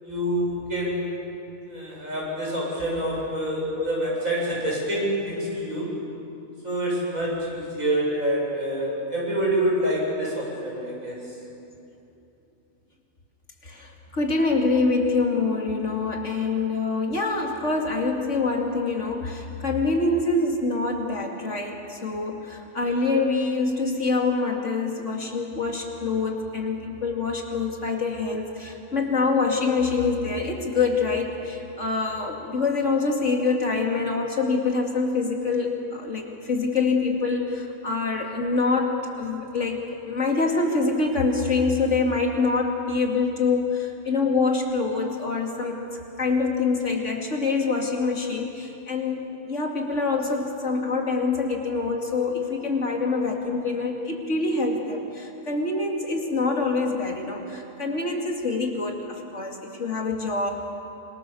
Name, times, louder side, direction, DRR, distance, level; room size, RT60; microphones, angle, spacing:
voice 1, 0.0-1.2 1.7-5.9 6.6-11.4, right 1 dB, 75° right, -4 dB, 8.6 m, -27 dB
voice 2, 13.6-45.8 46.2-49.2 49.5-60.5, left 3 dB, 55° left, 1 dB, 3.0 m, -25 dB
26.5 x 26.0 x 7.1 m, 2.8 s
omnidirectional pair, 1.5 m